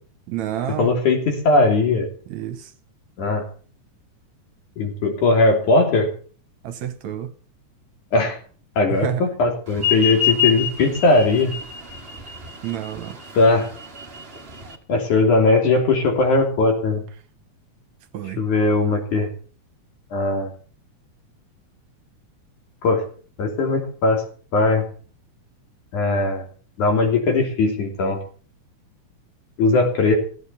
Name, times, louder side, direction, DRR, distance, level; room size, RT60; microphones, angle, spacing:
voice 1, 0.3-1.0 2.3-2.7 6.6-7.3 8.9-9.3 12.6-13.2 18.1-18.4, right 11 dB, 70° right, 2.2 m, -28 dB
voice 2, 0.8-2.1 3.2-3.4 4.8-6.1 8.1-8.4 8.8-11.5 13.3-13.7 14.9-17.0 18.4-19.3 20.1-20.5 22.8-23.0 23.4-24.2 24.5-24.8 25.9-26.4 26.8-28.2 29.6-30.2, left 3 dB, 70° left, 4.6 m, -19 dB
sound 1, 9.7-14.8, left 9 dB, 25° right, 1.4 m, -26 dB
15.5 x 8.5 x 7.0 m
omnidirectional pair, 3.6 m